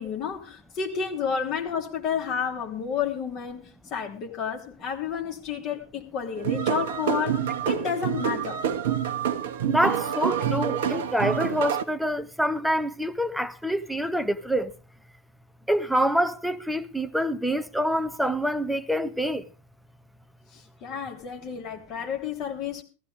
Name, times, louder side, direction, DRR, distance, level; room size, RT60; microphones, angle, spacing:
voice 1, 0.0-8.6 20.5-22.8, left 7 dB, 35° left, 3.1 m, -31 dB
sound 1, 6.4-11.8, right 8 dB, 55° right, 1.2 m, -27 dB
voice 2, 9.7-14.7 15.7-19.4, equal, ahead, 0.8 m, -26 dB
15.0 x 14.5 x 3.6 m
figure-of-eight pair, 90°, 0 cm